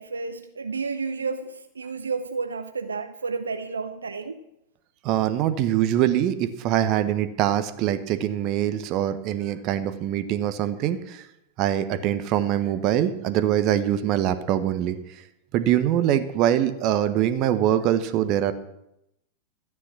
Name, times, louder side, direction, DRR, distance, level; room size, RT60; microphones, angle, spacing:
voice 1, 0.0-4.4, right 4 dB, 75° right, 8 dB, 0.7 m, -31 dB
voice 2, 5.0-11.2 11.6-15.0 15.5-18.5, right 11 dB, 40° right, 11 dB, 1.2 m, -23 dB
13.5 x 9.8 x 6.1 m, 0.83 s
figure-of-eight pair, 90°, 0 cm